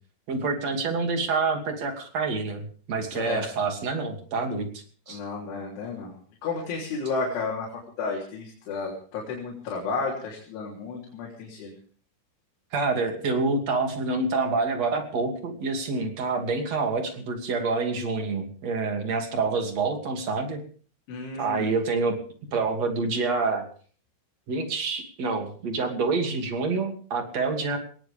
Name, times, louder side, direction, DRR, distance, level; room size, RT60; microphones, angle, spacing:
voice 1, 0.3-4.7 5.1-5.2 12.7-20.6 21.4-22.2 22.5-23.7 24.5-27.8, right 4 dB, 40° right, 4 dB, 3.1 m, -27 dB
voice 2, 3.1-3.5 5.1-6.2 6.4-7.7 8.0-11.8 21.1-21.7, left 4 dB, 70° left, -3 dB, 6.0 m, -32 dB
20.5 x 19.0 x 3.6 m, 0.44 s
omnidirectional pair, 5.6 m